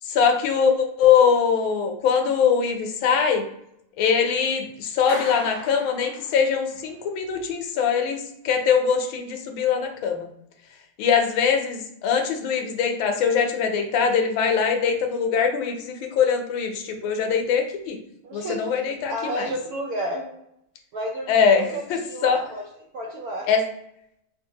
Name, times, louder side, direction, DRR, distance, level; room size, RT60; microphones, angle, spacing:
voice 1, 0.1-3.4 4.0-10.3 11.0-18.0 18.3-19.5 21.3-21.6 22.2-22.4 23.5-23.6, left 6 dB, 80° left, 4 dB, 1.4 m, -22 dB
Clapping, 5.1-6.7, left 1 dB, 25° right, 0.9 m, -37 dB
voice 2, 18.2-18.7 19.1-20.3 20.9-22.6 22.9-23.5, right 1 dB, 80° right, -2 dB, 0.8 m, -31 dB
4.3 x 2.5 x 2.7 m, 0.78 s
omnidirectional pair, 2.2 m